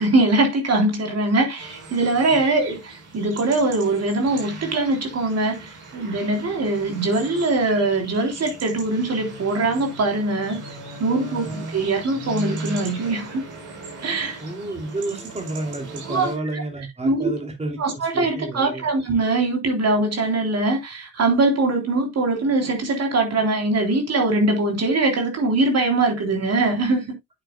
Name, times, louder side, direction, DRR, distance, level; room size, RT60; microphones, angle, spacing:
voice 1, 0.0-10.6 11.0-13.4 14.0-14.4 16.1-16.3 17.0-17.3 17.8-27.1, right 2 dB, 60° right, 3.5 m, -22 dB
sound 1, 1.6-16.4, right 2 dB, 80° right, 4.2 m, -38 dB
voice 2, 11.2-11.6 14.4-18.9, right 2 dB, 20° right, 2.7 m, -31 dB
8.9 x 8.4 x 2.2 m
supercardioid pair, 60°, 30 cm